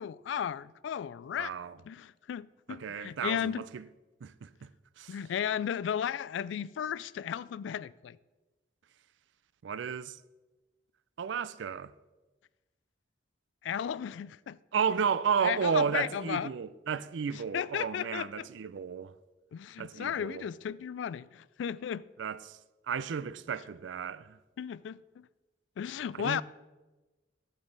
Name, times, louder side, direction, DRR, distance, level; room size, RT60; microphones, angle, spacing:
voice 1, 0.0-1.5 1.9-3.6 5.1-8.2 13.6-14.6 15.4-16.5 17.5-18.5 19.5-22.0 24.6-25.2 25.8-26.4, left 8 dB, 80° left, 0.3 m, -35 dB
voice 2, 1.4-1.8 2.7-3.9 4.2-4.7 5.0-5.2 9.6-10.2 11.2-11.9 14.7-19.2 19.8-20.5 22.2-24.4 26.1-26.4, right 6 dB, 80° right, 0.4 m, -33 dB
12.0 x 8.0 x 3.9 m
head